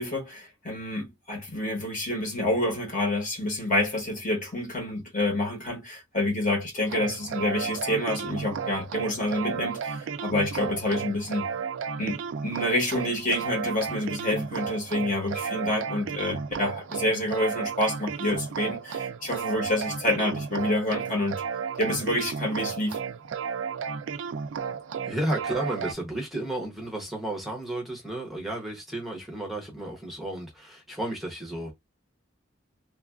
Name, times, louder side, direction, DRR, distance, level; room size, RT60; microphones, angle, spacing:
voice 1, 0.0-11.5 12.0-21.4 21.8-23.0, left 1 dB, 45° left, 1.0 m, -28 dB
sound 1, 6.8-25.9, right 6 dB, 85° right, 0.4 m, -33 dB
voice 2, 25.1-31.7, right 1 dB, ahead, 0.7 m, -32 dB
3.0 x 2.3 x 2.3 m
head